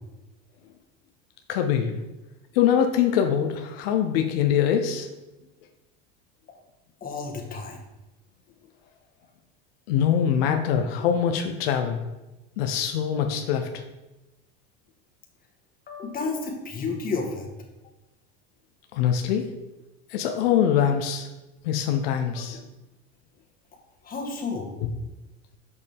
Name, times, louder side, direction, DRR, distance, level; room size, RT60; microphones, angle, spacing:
voice 1, 1.5-2.0 2.5-5.1 9.9-12.0 12.6-13.8 18.9-19.5 20.1-21.3 21.6-22.6, left 8 dB, 90° left, 5 dB, 0.7 m, -23 dB
voice 2, 7.0-7.8 15.9-17.4 24.0-24.7, left 4 dB, 30° left, 0 dB, 1.5 m, -31 dB
6.3 x 5.3 x 3.5 m, 1.0 s
supercardioid pair, 115°, 29 cm